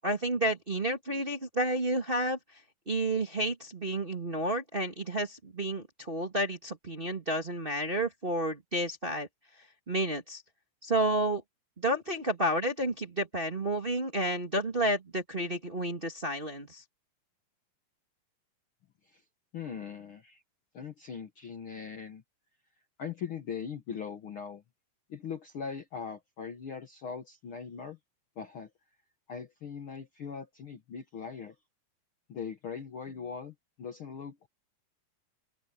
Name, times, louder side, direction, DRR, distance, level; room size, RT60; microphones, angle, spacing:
voice 1, 0.0-2.4 2.9-9.3 9.9-10.4 10.8-11.4 11.8-16.8, right 1 dB, 20° right, 1.5 m, -31 dB
voice 2, 19.5-20.4 20.7-22.2 23.0-24.6 25.1-28.0 28.4-28.7 29.3-31.5 32.3-34.5, left 6 dB, 55° left, 1.6 m, -40 dB
open air
omnidirectional pair, 3.9 m